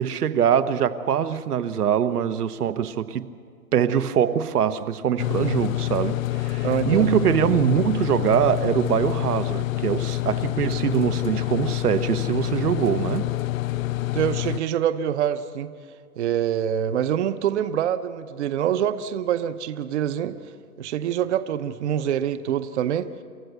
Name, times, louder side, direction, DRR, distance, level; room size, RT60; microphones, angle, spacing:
voice 1, 0.0-3.3 3.7-13.3, right 9 dB, 80° right, 10 dB, 1.1 m, -23 dB
sound 1, 5.2-14.6, left 18 dB, 65° left, 0.5 m, -27 dB
voice 2, 6.6-7.2 14.1-15.7 16.2-20.3 20.8-23.1, right 10 dB, 50° right, 11 dB, 0.9 m, -25 dB
28.0 x 13.5 x 8.0 m, 2.1 s
hypercardioid pair, 155°, 45 cm